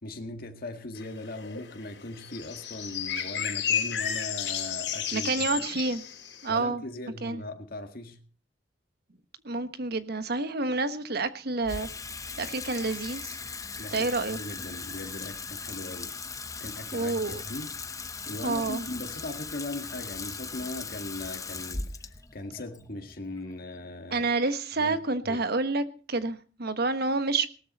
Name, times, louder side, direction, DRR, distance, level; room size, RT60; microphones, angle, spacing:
voice 1, 0.0-5.5 6.5-8.2 13.8-16.1 16.6-17.7 18.3-24.3 24.8-25.0 25.2-25.4, left 2 dB, 55° left, 1.9 m, -39 dB
sound 1, 1.0-6.5, left 8 dB, 75° left, 3.8 m, -32 dB
voice 2, 5.1-6.0 6.4-6.8 7.2-7.4 9.4-11.9 12.4-13.4 13.9-14.4 16.9-17.4 18.4-18.8 24.1-27.5, right 3 dB, 60° right, 1.3 m, -28 dB
Water tap faucet / Sink (filling or washing), 11.6-24.0, left 4 dB, 20° left, 0.9 m, -39 dB
18.0 x 13.0 x 4.2 m
head